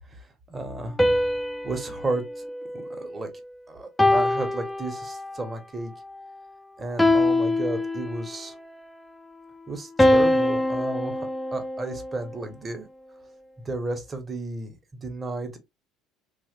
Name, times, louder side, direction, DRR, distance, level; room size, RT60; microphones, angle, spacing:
voice 1, 0.1-1.0 1.6-2.4 2.9-3.3 3.7-5.9 6.8-8.5 9.7-12.9 13.6-15.6, right 2 dB, 25° right, 1.1 m, -33 dB
sound 1, 1.0-3.4 4.0-5.4 7.0-8.4 10.0-12.3, left 1 dB, 10° left, 0.5 m, -24 dB
3.1 x 2.4 x 2.9 m
figure-of-eight pair, 60°, 0 cm